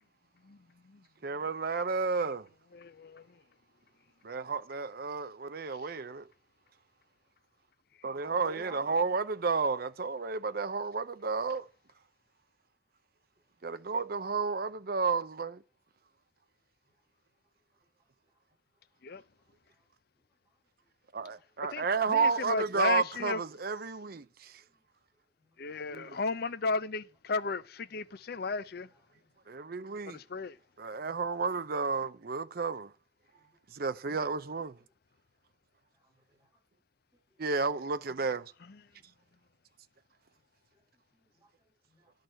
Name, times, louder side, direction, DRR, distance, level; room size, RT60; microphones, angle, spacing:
voice 1, 1.2-2.5 4.2-6.3 8.0-11.7 13.6-15.6 21.1-24.5 25.9-26.2 29.5-30.2 30.8-32.9 33.7-34.8 37.4-38.5, right 4 dB, 50° right, 0.6 m, -32 dB
voice 2, 2.7-3.3 19.0-19.2 21.7-23.4 25.6-28.9 30.1-30.6, left 4 dB, 55° left, 0.6 m, -34 dB
voice 3, 8.3-9.0 19.7-19.8 20.4-20.5 21.3-21.5 24.7-24.8 25.4-25.6 29.1-29.3 33.2-33.6 34.8-34.9 36.0-36.5 37.3-37.4 38.9-39.1 40.7-40.8 41.1-41.7, right 1 dB, 20° right, 7.2 m, -55 dB
10.5 x 6.5 x 7.8 m
head